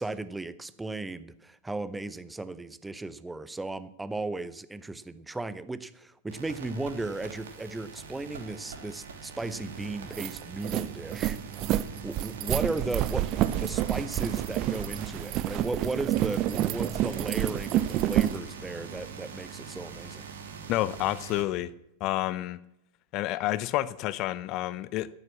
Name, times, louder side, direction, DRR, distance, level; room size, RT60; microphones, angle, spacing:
voice 1, 0.0-11.4 12.0-13.2 13.6-20.2, right 2 dB, 10° right, 0.8 m, -35 dB
sound 1, 6.3-21.4, right 6 dB, 65° right, 2.6 m, -43 dB
sound 2, 9.5-9.6 9.9-18.4, right 13 dB, 35° right, 0.7 m, -28 dB
voice 2, 20.7-21.7 22.0-22.6 23.1-25.1, left 15 dB, 40° left, 0.5 m, -29 dB
12.5 x 11.0 x 7.3 m
figure-of-eight pair, 90°, 0 cm